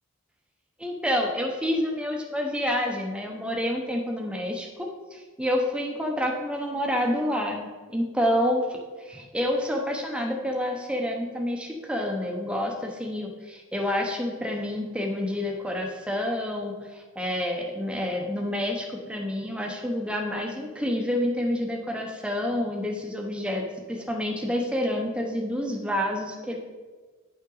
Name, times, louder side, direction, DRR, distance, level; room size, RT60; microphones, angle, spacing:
voice 1, 0.8-26.6, left 1 dB, 5° right, 1 dB, 0.7 m, -28 dB
9.2 x 5.5 x 3.9 m, 1.4 s
head